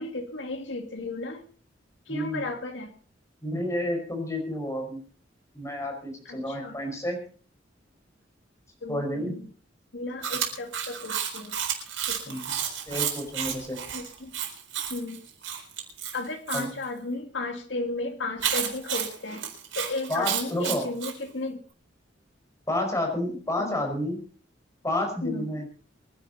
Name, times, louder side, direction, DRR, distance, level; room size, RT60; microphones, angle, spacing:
voice 1, 0.0-1.4 2.1-2.9 6.3-6.8 8.8-9.5 9.9-11.5 12.1-12.4 13.9-14.4 14.9-15.2 16.1-19.4 19.7-21.6 23.6-23.8 25.2-25.5, left 2 dB, 70° left, 4 dB, 2.3 m, -34 dB
voice 2, 2.1-2.4 3.4-5.0 5.5-7.2 8.9-9.3 12.3-12.5 12.9-13.8 16.5-16.7 20.1-20.9 22.7-24.2 24.8-25.7, left 1 dB, 15° left, 2 dB, 5.4 m, -30 dB
Chewing mastication, 10.2-16.7 18.4-21.2, right 8 dB, 85° right, 4.2 m, -31 dB
24.0 x 10.5 x 4.1 m, 0.42 s
head